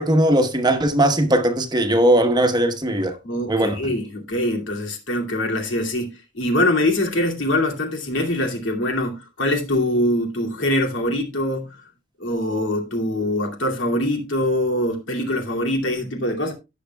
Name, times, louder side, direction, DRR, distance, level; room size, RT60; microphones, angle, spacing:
voice 1, 0.0-3.2 3.5-3.8, right 1 dB, 20° right, 1.1 m, -19 dB
voice 2, 3.2-11.7 12.2-16.5, left 1 dB, 75° left, 2.5 m, -23 dB
17.0 x 6.6 x 2.3 m
head